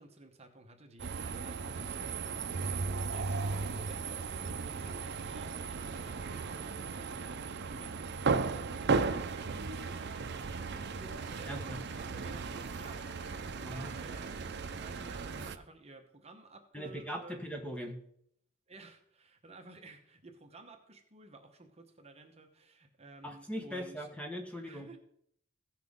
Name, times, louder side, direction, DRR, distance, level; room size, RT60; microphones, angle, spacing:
voice 1, 0.0-17.5 18.7-24.1 24.6-25.0, right 2 dB, 30° right, 4 dB, 1.1 m, -54 dB
sound 1, 1.0-15.6, right 4 dB, 55° right, 0.6 m, -36 dB
sound 2, 9.7-15.1, equal, 50° left, 4.2 m, -61 dB
voice 2, 11.5-11.8 13.7-13.9 16.7-18.0 23.2-24.9, equal, 5° left, 3 dB, 1.1 m, -40 dB
16.0 x 5.9 x 3.6 m, 0.70 s
head